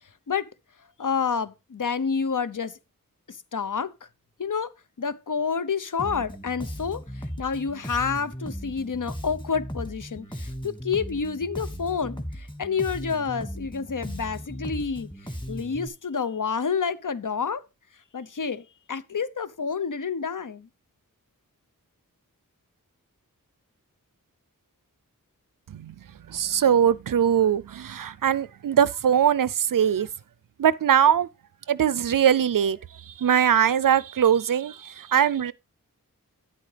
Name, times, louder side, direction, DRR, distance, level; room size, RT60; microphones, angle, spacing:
voice 1, 1.0-2.7 3.3-3.9 4.4-4.7 5.0-15.1 15.5-17.6 18.1-20.7, left 6 dB, 60° left, 0.8 m, -29 dB
Bass guitar, 6.0-15.9, equal, 15° left, 1.8 m, -37 dB
voice 2, 26.3-30.1 30.6-31.3 31.7-32.8 33.1-35.5, right 9 dB, 65° right, 0.5 m, -21 dB
10.0 x 8.3 x 3.3 m
wide cardioid pair, 50°, 35 cm